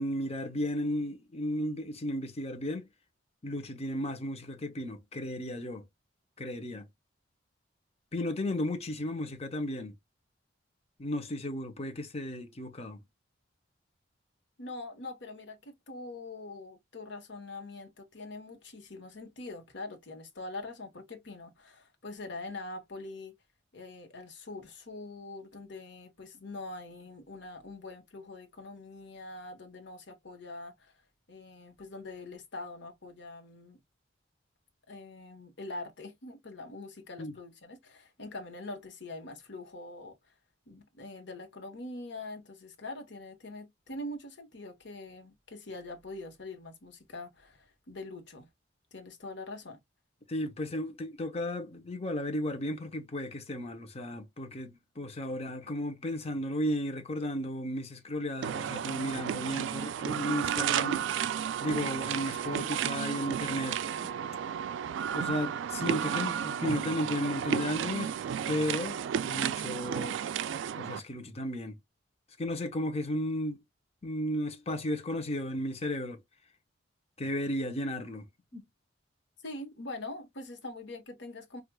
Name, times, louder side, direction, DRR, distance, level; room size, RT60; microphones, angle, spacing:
voice 1, 0.0-2.9 3.4-5.8 6.4-6.8 8.1-9.9 11.0-13.0 37.2-37.3 50.3-61.0 61.6-63.8 65.1-68.1 68.5-70.2 70.8-71.8 72.4-73.6 74.0-76.2 77.2-78.3 78.5-78.6, left 1 dB, 35° left, 0.7 m, -34 dB
voice 2, 14.6-23.3 23.7-30.9 31.3-33.8 34.9-40.2 40.7-48.5 48.9-49.8 79.4-81.6, left 2 dB, 65° left, 1.1 m, -43 dB
sound 1, 58.4-71.0, right 8 dB, 70° right, 0.3 m, -33 dB
4.6 x 2.4 x 2.2 m
head